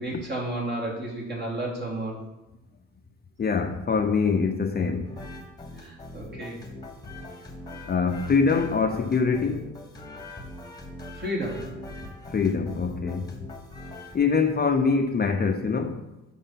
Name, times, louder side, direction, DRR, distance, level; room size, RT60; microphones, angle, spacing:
voice 1, 0.0-2.2 5.8-6.7 11.1-11.8, right 1 dB, 35° right, 2.9 m, -32 dB
voice 2, 3.4-5.1 7.9-9.7 12.3-13.3 14.1-16.0, left 5 dB, 30° left, 0.6 m, -24 dB
sound 1, 5.1-14.2, left 2 dB, 15° left, 1.4 m, -41 dB
6.5 x 5.5 x 5.8 m
cardioid pair, 90°, 30 cm